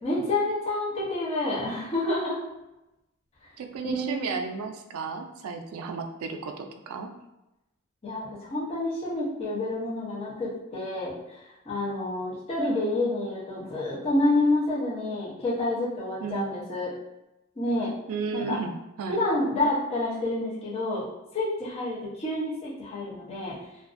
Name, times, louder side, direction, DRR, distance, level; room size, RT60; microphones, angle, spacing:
voice 1, 0.0-2.4 3.9-4.3 8.0-11.1 11.7-16.9 17.6-17.9 18.3-18.6 19.1-21.1 21.3-23.6, left 2 dB, 30° left, -7 dB, 0.7 m, -28 dB
voice 2, 3.6-7.1 16.2-16.6 18.1-18.7 19.0-19.2, right 5 dB, 80° right, 5 dB, 0.3 m, -34 dB
2.5 x 2.3 x 2.4 m, 0.94 s
head